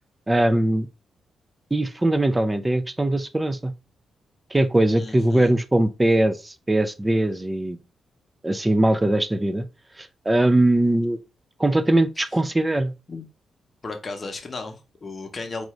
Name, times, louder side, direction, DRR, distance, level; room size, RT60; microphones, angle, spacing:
voice 1, 0.3-0.9 1.7-3.7 4.5-7.8 8.4-9.6 10.0-11.2 11.6-12.9, right 1 dB, 15° right, 0.4 m, -21 dB
voice 2, 4.9-5.5 13.1-13.2 13.8-15.7, left 3 dB, 40° left, 0.9 m, -35 dB
4.8 x 2.6 x 3.1 m
cardioid pair, 85°, 0 cm